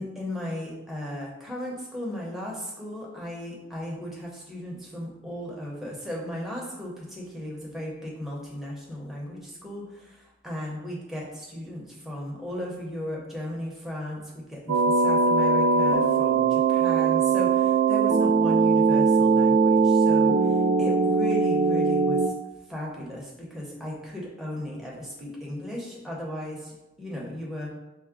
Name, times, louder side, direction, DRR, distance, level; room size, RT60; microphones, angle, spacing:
voice 1, 0.0-22.3 22.7-26.7 27.0-27.7, left 1 dB, ahead, -4 dB, 0.7 m, -36 dB
sound 1, 14.7-22.3, right 4 dB, 85° right, 0.3 m, -21 dB
4.5 x 2.1 x 3.6 m, 0.98 s
head